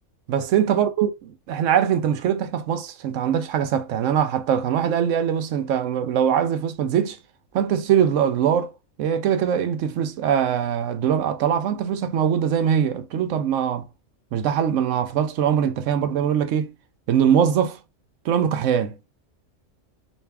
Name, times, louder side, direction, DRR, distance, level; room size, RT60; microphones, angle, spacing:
voice 1, 0.3-1.1 1.5-7.2 7.5-8.7 9.0-13.8 14.3-16.7 17.1-17.8 18.2-19.0, right 8 dB, 85° right, 1.0 m, -22 dB
3.4 x 2.6 x 3.3 m
omnidirectional pair, 1.3 m